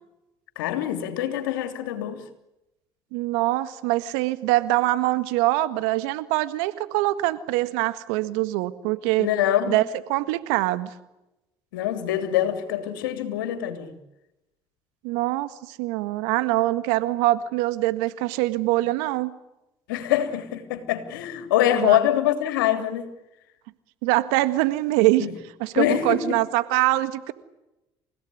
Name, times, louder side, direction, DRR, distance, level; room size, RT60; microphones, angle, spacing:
voice 1, 0.5-2.2 9.2-9.8 11.7-13.9 19.9-23.1 25.2-25.3 25.7-26.4, left 11 dB, 90° left, 9 dB, 3.1 m, -24 dB
voice 2, 3.1-9.3 9.7-10.9 15.0-19.3 21.8-22.0 24.0-25.3 25.6-27.3, right 17 dB, 80° right, 13 dB, 1.7 m, -24 dB
29.5 x 17.0 x 9.9 m, 0.94 s
hypercardioid pair, 65°, 11 cm